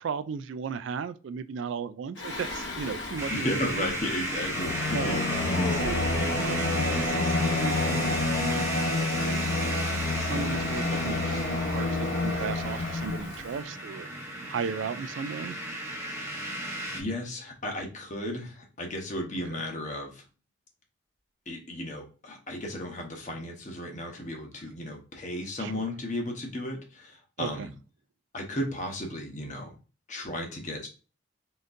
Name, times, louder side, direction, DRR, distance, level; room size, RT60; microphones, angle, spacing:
voice 1, 0.0-3.9 4.9-5.2 5.7-9.4 10.2-14.1 14.5-15.6 19.5-19.6 25.6-25.8 27.4-27.7, right 6 dB, 70° right, 0.3 m, -36 dB
Singing, 2.2-13.5, left 2 dB, 65° left, 1.0 m, -29 dB
sound 1, 3.2-17.0, right 1 dB, 15° right, 0.8 m, -34 dB
voice 2, 3.3-5.3 16.9-20.2 21.5-27.7 28.3-29.8 30.1-30.9, left 1 dB, 40° left, 0.9 m, -34 dB
3.9 x 3.6 x 2.6 m
head